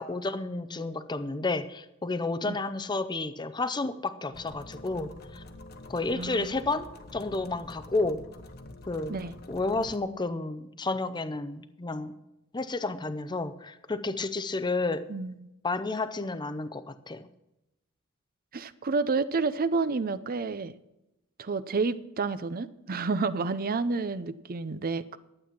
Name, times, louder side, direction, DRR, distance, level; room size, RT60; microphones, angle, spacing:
voice 1, 0.0-5.4 5.9-6.9 7.1-8.2 8.9-9.2 9.5-12.1 12.5-15.0 15.6-17.3, left 3 dB, 20° left, 11 dB, 0.6 m, -31 dB
sound 1, 4.3-10.0, left 2 dB, 50° left, 1.0 m, -46 dB
voice 2, 6.2-6.6 9.1-9.3 15.1-15.4 18.5-20.7 21.4-25.2, right 4 dB, 45° right, 14 dB, 0.6 m, -30 dB
12.0 x 8.5 x 5.9 m, 0.89 s
head